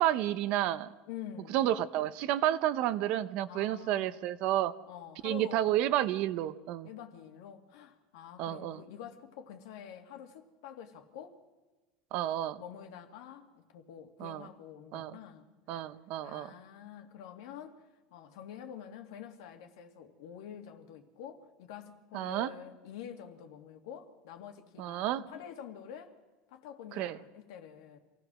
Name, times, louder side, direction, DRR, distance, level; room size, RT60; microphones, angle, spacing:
voice 1, 0.0-0.9 1.5-4.7 5.2-6.9 8.4-8.8 12.1-12.6 14.2-14.5 14.9-15.2 15.7-16.5 22.1-22.5 24.8-25.2 27.0-27.2, right 13 dB, 55° right, 0.9 m, -30 dB
voice 2, 1.1-1.7 3.5-4.2 4.9-5.7 6.8-11.4 12.6-15.5 16.2-17.8 18.1-26.1 26.5-28.0, left 9 dB, 80° left, 2.3 m, -47 dB
26.5 x 16.5 x 6.3 m
supercardioid pair, 145°, 2 cm